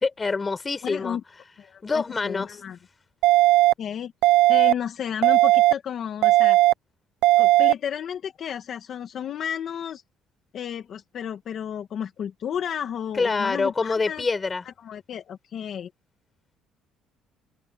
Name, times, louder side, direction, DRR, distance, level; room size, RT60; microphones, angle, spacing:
voice 1, 0.0-1.2 1.8-2.6 13.1-14.6, left 4 dB, 20° left, 4.5 m, -26 dB
voice 2, 0.8-1.2 1.6-2.8 3.8-6.6 7.4-10.0 10.5-14.3 14.8-15.9, left 9 dB, 40° left, 2.1 m, -32 dB
sound 1, 3.2-3.7 4.2-4.7 5.2-5.7 6.2-6.7 7.2-7.7, right 17 dB, 80° right, 0.5 m, -16 dB
cardioid pair, 160°, 0 cm